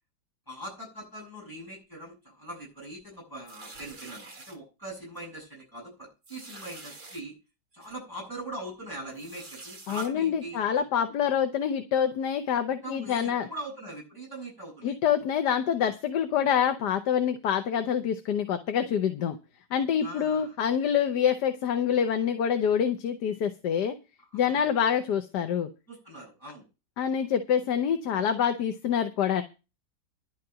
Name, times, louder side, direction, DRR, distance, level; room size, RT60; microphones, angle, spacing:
voice 1, 0.5-7.3 7.7-10.8 12.8-15.0 20.0-20.5 24.3-24.7 25.9-26.6, right 1 dB, 10° left, -4 dB, 7.6 m, -41 dB
sound 1, 3.5-4.6 5.2-5.3 5.6-5.7 6.2-7.2 7.8-7.9 9.1-10.1, right 3 dB, 30° right, 1.8 m, -46 dB
voice 2, 9.9-13.5 14.8-19.4 19.7-23.9 24.3-25.7 27.0-29.4, left 8 dB, 75° left, 8 dB, 1.5 m, -26 dB
11.0 x 5.8 x 8.8 m, 0.29 s
omnidirectional pair, 1.9 m